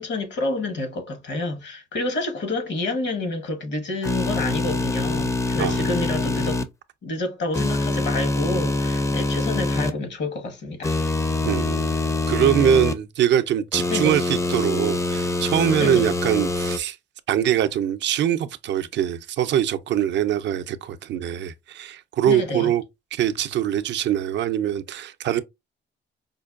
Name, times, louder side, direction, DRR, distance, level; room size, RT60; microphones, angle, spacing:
voice 1, 0.0-6.6 7.0-11.0 13.9-14.2 15.8-16.1 22.2-22.7, left 2 dB, 65° left, 1.2 m, -29 dB
sound 1, 4.0-6.6 7.5-9.9 10.8-12.9 13.7-16.8, left 2 dB, 15° left, 0.4 m, -24 dB
voice 2, 11.4-11.9 12.3-17.0 17.3-22.8 23.1-25.4, right 10 dB, 65° right, 0.4 m, -23 dB
5.1 x 2.2 x 2.4 m
cardioid pair, 90°, 20 cm